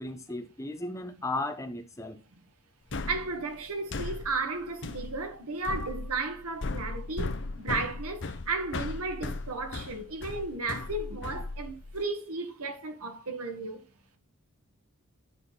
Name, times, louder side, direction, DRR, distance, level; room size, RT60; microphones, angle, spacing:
voice 1, 0.0-2.2, left 2 dB, 15° left, 1.0 m, -35 dB
sound 1, 2.9-12.0, left 3 dB, 55° left, 0.8 m, -37 dB
voice 2, 3.1-13.9, right 3 dB, 85° right, 1.6 m, -34 dB
9.3 x 5.9 x 4.0 m
head